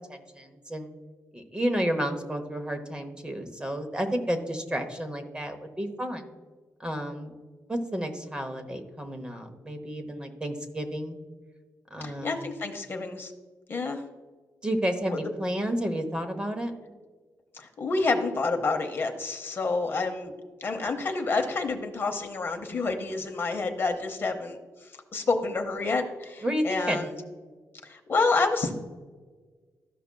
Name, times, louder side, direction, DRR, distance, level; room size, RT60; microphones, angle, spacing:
voice 1, 0.1-0.9 1.3-6.2 6.8-7.3 7.7-11.2 11.9-12.5 14.6-16.7 26.4-27.1, equal, 15° right, 6 dB, 0.9 m, -31 dB
voice 2, 12.0-13.3 13.7-14.0 15.0-15.2 17.5-20.3 20.6-27.1 27.8-28.8, left 3 dB, 35° left, 4 dB, 0.8 m, -29 dB
13.5 x 5.8 x 2.2 m, 1.5 s
wide cardioid pair, 150°, 7 cm